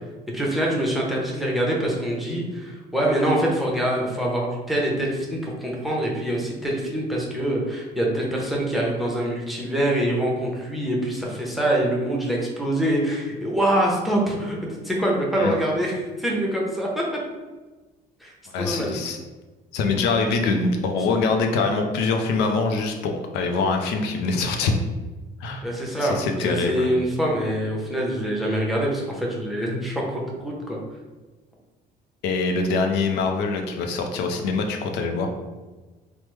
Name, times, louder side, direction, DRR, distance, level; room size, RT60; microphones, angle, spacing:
voice 1, 0.3-17.0 18.2-18.3 18.6-19.0 25.6-30.8, right 1 dB, ahead, -3 dB, 0.7 m, -25 dB
voice 2, 18.5-19.2 19.7-24.7 25.4-25.6 26.0-26.9 32.2-35.3, left 4 dB, 85° left, 4 dB, 0.4 m, -24 dB
3.2 x 2.0 x 3.1 m, 1.2 s
cardioid pair, 110°, 17 cm